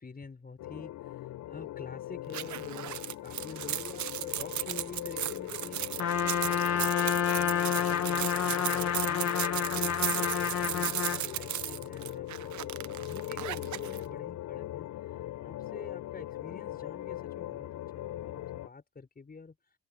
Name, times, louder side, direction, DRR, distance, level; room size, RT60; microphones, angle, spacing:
voice 1, 0.0-10.0 10.4-14.9 15.4-19.6, left 4 dB, 30° left, 6.3 m, -47 dB
sound 1, 0.6-18.7, left 14 dB, 85° left, 6.8 m, -40 dB
sound 2, 2.3-14.0, right 13 dB, 70° right, 0.9 m, -36 dB
Trumpet, 6.0-11.3, left 8 dB, 55° left, 1.4 m, -29 dB
open air
cardioid pair, 90°, 30 cm